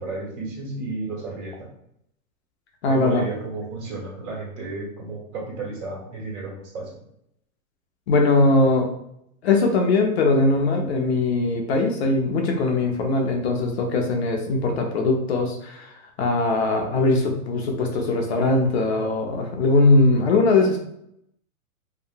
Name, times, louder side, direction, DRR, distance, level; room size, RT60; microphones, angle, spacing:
voice 1, 0.0-1.7 2.9-7.0, right 3 dB, 55° right, -3 dB, 1.5 m, -33 dB
voice 2, 2.8-3.2 8.1-8.9 9.4-20.8, left 2 dB, 50° left, 2 dB, 0.5 m, -20 dB
2.8 x 2.1 x 2.5 m, 0.74 s
hypercardioid pair, 155°, 43 cm